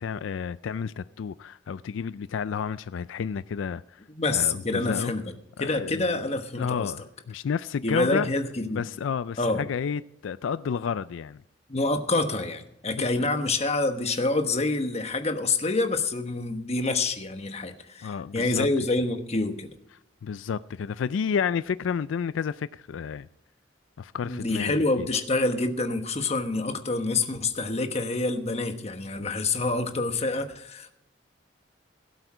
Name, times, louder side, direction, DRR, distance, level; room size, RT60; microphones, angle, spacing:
voice 1, 0.0-4.0 4.3-5.1 5.6-6.1 6.6-8.3 8.7-11.4 12.9-13.1 18.0-18.7 20.2-23.3 24.0-25.1, left 6 dB, 85° left, 0.4 m, -31 dB
voice 2, 4.1-5.3 5.6-6.9 7.8-8.9 9.4-9.7 11.7-19.7 24.2-30.9, left 3 dB, 35° left, 1.2 m, -27 dB
17.0 x 8.0 x 5.0 m
head